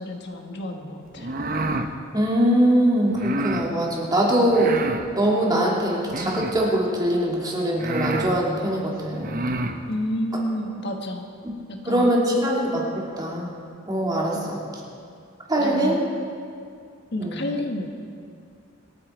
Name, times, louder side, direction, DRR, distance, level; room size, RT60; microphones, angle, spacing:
voice 1, 0.0-1.4 4.3-4.5 9.9-11.3 11.7-12.2 14.3-14.5 15.6-16.0 17.1-17.9, left 1 dB, 60° left, 3 dB, 1.4 m, -30 dB
sound 1, 1.1-1.9 3.1-3.7 4.5-5.1 6.1-6.7 7.4-7.5 7.8-8.3 9.1-9.8, right 2 dB, 45° right, 0.9 m, -28 dB
voice 2, 2.1-4.7 5.2-9.4 11.4-11.5 11.9-13.5 13.9-14.4 15.5-16.0 17.2-17.4, right 1 dB, 20° right, -3 dB, 2.7 m, -22 dB
27.0 x 9.5 x 4.5 m, 2.3 s
head